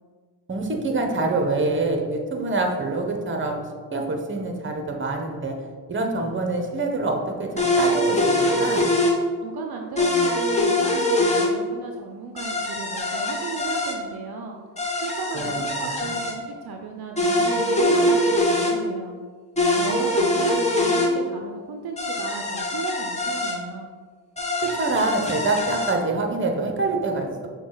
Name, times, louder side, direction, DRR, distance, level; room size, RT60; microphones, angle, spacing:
voice 1, 0.5-3.6 3.9-5.5 5.9-8.9 15.3-16.2 24.6-27.5, right 2 dB, 30° right, 2 dB, 0.9 m, -26 dB
sound 1, 7.6-9.2 10.0-11.5 12.4-14.0 14.8-16.4 17.2-18.7 19.6-21.1 22.0-23.6 24.4-26.0, left 1 dB, 15° left, 0.9 m, -23 dB
voice 2, 9.4-14.6 15.0-19.2 19.8-23.9, right 4 dB, 65° right, 3 dB, 0.6 m, -35 dB
5.8 x 2.4 x 3.8 m, 1.6 s
cardioid pair, 55°, 40 cm